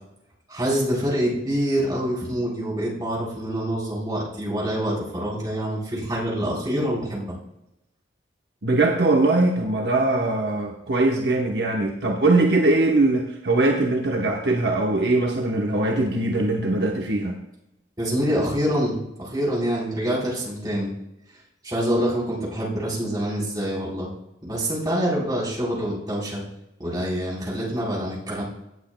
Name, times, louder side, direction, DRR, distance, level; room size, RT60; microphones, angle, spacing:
voice 1, 0.5-7.4 18.0-20.9 21.6-24.1 24.4-26.4 26.8-28.4, equal, 20° right, -6 dB, 3.8 m, -26 dB
voice 2, 8.6-17.4, right 2 dB, 60° right, 0 dB, 1.0 m, -21 dB
17.5 x 7.8 x 2.2 m, 0.89 s
head